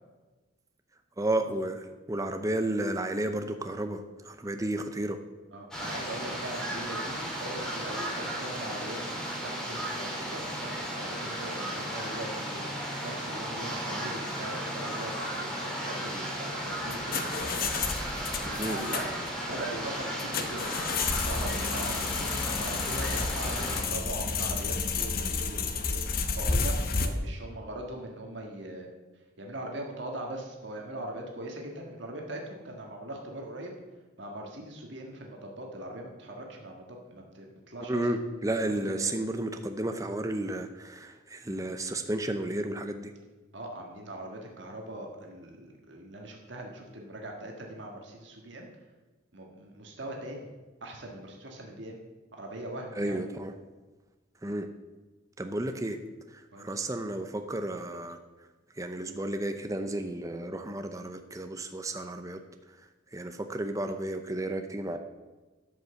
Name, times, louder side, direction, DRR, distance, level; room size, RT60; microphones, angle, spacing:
voice 1, 1.2-5.2 18.6-18.8 37.8-43.1 53.0-53.5 54.4-54.7 55.4-56.0 56.3-58.2 58.8-62.4 63.1-65.0, right 1 dB, 15° right, 7 dB, 0.6 m, -32 dB
voice 2, 5.5-9.0 9.4-12.7 13.0-17.6 18.4-19.1 19.4-20.7 21.1-28.9 29.4-33.7 34.2-38.1 38.6-39.1 43.5-48.7 49.3-50.5 50.8-52.0 52.3-53.2 56.5-56.7, right 1 dB, 60° right, 1 dB, 1.6 m, -41 dB
sound 1, 5.7-23.8, right 1 dB, 5° left, 2.2 m, -35 dB
sound 2, 16.7-27.1, left 4 dB, 45° left, 0.9 m, -31 dB
12.0 x 5.5 x 6.9 m, 1.2 s
head